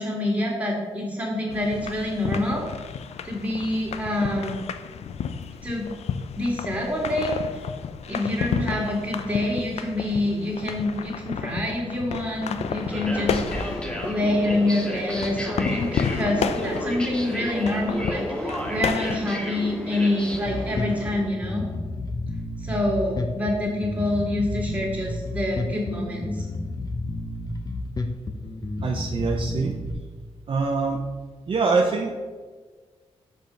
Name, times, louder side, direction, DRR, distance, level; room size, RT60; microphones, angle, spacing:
voice 1, 0.0-2.6 3.2-4.6 5.6-5.9 6.4-7.3 8.1-21.7 22.6-26.4, left 1 dB, 15° right, -3 dB, 2.1 m, -26 dB
sound 1, 1.5-19.2, left 7 dB, 75° left, 0.4 m, -32 dB
sound 2, 12.6-21.2, equal, 10° left, 1.0 m, -32 dB
Bass guitar, 20.3-29.9, left 2 dB, 35° left, 0.7 m, -31 dB
voice 2, 28.8-29.7 30.5-31.0 31.5-32.1, right 4 dB, 50° right, 1 dB, 0.6 m, -24 dB
5.4 x 4.5 x 5.2 m, 1.4 s
cardioid pair, 90°, 11 cm